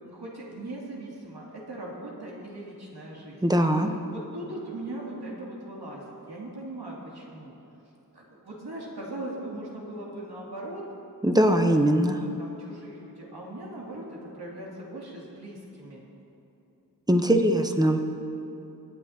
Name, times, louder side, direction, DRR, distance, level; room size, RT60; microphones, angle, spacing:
voice 1, 0.0-3.4 4.1-7.5 8.1-10.8 11.5-11.7 11.9-12.0 12.4-16.0, right 1 dB, 85° right, -5 dB, 2.9 m, -39 dB
voice 2, 3.4-3.9 11.2-12.2 17.1-18.1, right 1 dB, 10° right, 5 dB, 1.0 m, -21 dB
24.5 x 9.9 x 2.9 m, 2.9 s
wide cardioid pair, 50°, 37 cm